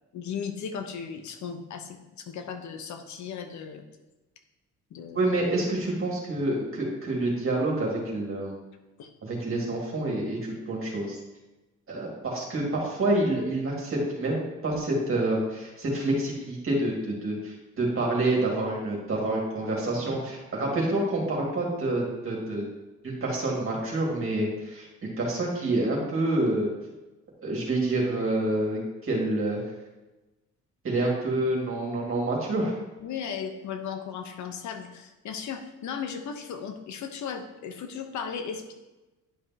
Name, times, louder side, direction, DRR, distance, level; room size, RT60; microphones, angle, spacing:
voice 1, 0.1-3.8 4.9-5.3 9.0-9.1 33.0-38.7, left 7 dB, 70° left, 6 dB, 1.0 m, -36 dB
voice 2, 5.1-8.5 9.2-11.2 11.9-22.7 23.0-26.7 27.4-29.6 30.8-32.7, right 2 dB, 45° right, -3 dB, 2.3 m, -27 dB
10.5 x 5.2 x 2.9 m, 1.1 s
cardioid pair, 90°, 30 cm